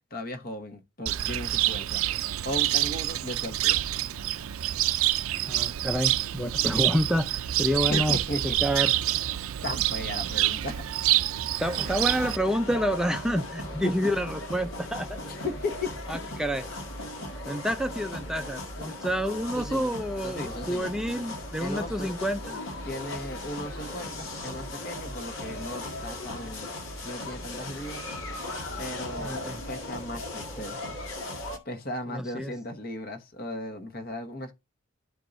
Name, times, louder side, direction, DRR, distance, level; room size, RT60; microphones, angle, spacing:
voice 1, 0.1-2.0 2.4-3.8 6.8-6.9 7.9-8.4 9.6-10.9 13.8-14.1 15.3-15.9 19.5-19.9 20.2-20.9 21.6-22.1 22.8-26.7 27.0-28.0 28.8-34.5, left 1 dB, 45° left, 1.2 m, -36 dB
Cricket, 1.1-12.4, right 14 dB, 90° right, 0.4 m, -27 dB
voice 2, 5.5-8.2 8.6-9.0 11.6-15.2 16.1-16.6 17.5-22.6 29.2-29.6 32.1-32.5, equal, 5° right, 0.4 m, -29 dB
sound 1, 11.6-31.6, left 1 dB, 75° left, 1.9 m, -37 dB
12.5 x 4.6 x 2.6 m
head